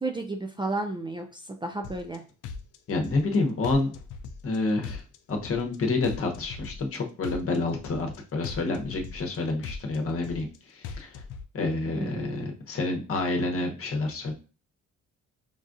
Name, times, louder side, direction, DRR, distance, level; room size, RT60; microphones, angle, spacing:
voice 1, 0.0-2.2 11.9-12.5, right 2 dB, 15° right, 3 dB, 0.4 m, -33 dB
sound 1, 1.8-2.2 2.4-3.4 3.6-4.6 4.8-5.8 6.0-7.0 7.2-8.2 8.4-9.4 9.6-10.6 10.8-11.4, left 5 dB, 85° left, 0.5 m, -39 dB
voice 2, 2.9-3.9 4.4-5.0 5.3-11.2 11.5-14.3, left 3 dB, 45° left, 2 dB, 1.0 m, -28 dB
5.4 x 2.4 x 2.5 m, 0.37 s
cardioid pair, 90°, 30 cm